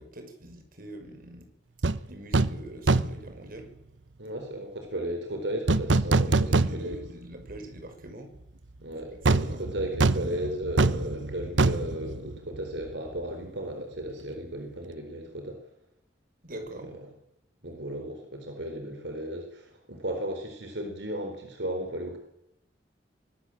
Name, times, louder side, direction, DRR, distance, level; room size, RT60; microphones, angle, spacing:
voice 1, 0.0-1.5 2.1-3.7 6.2-8.3 9.1-9.6 16.4-16.9, right 1 dB, 50° right, 6 dB, 6.1 m, -44 dB
sound 1, 1.8-2.0 2.3-2.6 2.9-3.3 5.7-7.1 7.5-7.6 9.2-12.9 13.2-13.3, right 3 dB, 90° right, 1.1 m, -24 dB
voice 2, 4.2-7.0 8.8-15.6 16.6-17.1 17.6-22.2, right 1 dB, 70° right, 4 dB, 4.2 m, -35 dB
24.5 x 19.0 x 7.8 m, 0.81 s
head